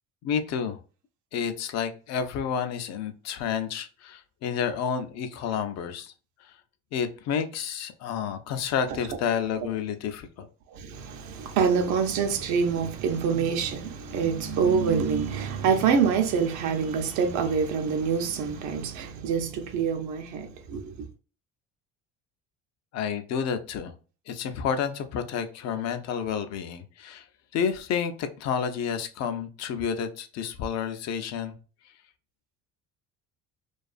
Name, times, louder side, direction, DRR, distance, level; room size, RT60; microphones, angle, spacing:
voice 1, 0.2-0.8 1.3-6.1 6.4-6.5 6.9-10.5 22.9-23.9 24.3-27.2 27.5-31.5, left 7 dB, 60° left, 0.5 m, -30 dB
voice 2, 10.7-20.9, right 6 dB, 70° right, 0.6 m, -26 dB
2.4 x 2.3 x 2.4 m
supercardioid pair, 95°, 30 cm